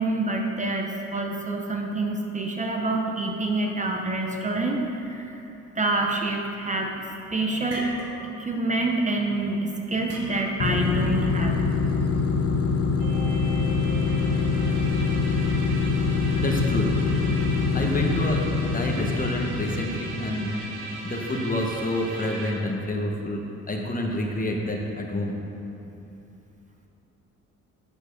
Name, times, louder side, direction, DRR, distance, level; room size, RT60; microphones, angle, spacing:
voice 1, 0.0-5.4 5.8-6.9 7.3-7.9 8.4-11.6 17.7-17.8, right 2 dB, 25° right, 1 dB, 0.7 m, -27 dB
sound 1, 7.0-7.1 7.4-8.5 8.8-9.1 10.1-10.8, equal, 55° right, 1.4 m, -39 dB
sound 2, 10.6-20.4, left 4 dB, 50° left, 0.6 m, -24 dB
sound 3, 13.0-22.5, right 2 dB, 70° right, 1.5 m, -38 dB
voice 2, 14.0-14.7 15.5-15.6 16.4-16.9 17.7-18.4 18.7-20.5 21.0-23.4 23.7-25.3, left 1 dB, 30° left, 1 dB, 1.0 m, -28 dB
8.6 x 4.6 x 5.2 m, 2.9 s
cardioid pair, 90°, 30 cm